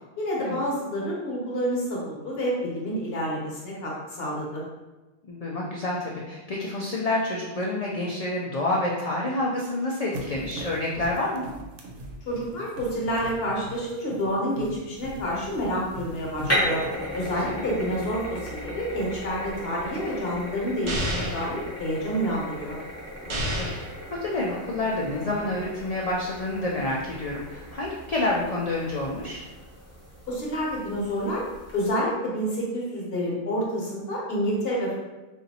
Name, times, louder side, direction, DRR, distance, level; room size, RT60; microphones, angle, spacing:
voice 1, 0.2-4.6 12.2-16.8 17.1-22.8 30.3-31.4 31.7-35.0, equal, 55° left, -3 dB, 1.1 m, -28 dB
voice 2, 5.2-11.5 17.3-17.6 23.3-23.7 24.1-29.4, left 2 dB, 90° left, -4 dB, 0.3 m, -28 dB
sound 1, 10.1-16.9, equal, 85° right, 0.9 m, -41 dB
sound 2, 15.0-31.9, equal, 15° left, 0.8 m, -36 dB
sound 3, 20.9-21.5 23.3-23.9, equal, 45° right, 0.4 m, -28 dB
3.9 x 2.5 x 2.7 m, 1.2 s
omnidirectional pair, 1.2 m